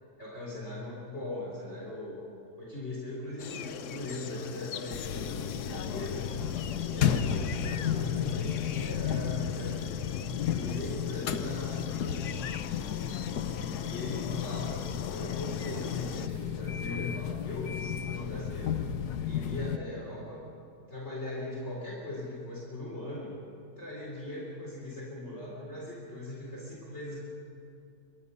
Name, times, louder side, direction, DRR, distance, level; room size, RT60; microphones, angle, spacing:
voice 1, 0.2-2.3 2.6-6.2 6.6-9.8 10.5-12.4 13.8-18.8 19.3-20.4 20.9-23.4 23.8-27.2, left 1 dB, 45° left, -4 dB, 4.2 m, -40 dB
sound 1, 3.4-16.3, left 8 dB, 60° left, 0.9 m, -41 dB
sound 2, 4.9-19.8, left 8 dB, 85° left, 1.5 m, -33 dB
26.0 x 22.0 x 5.6 m, 2.6 s
omnidirectional pair, 1.7 m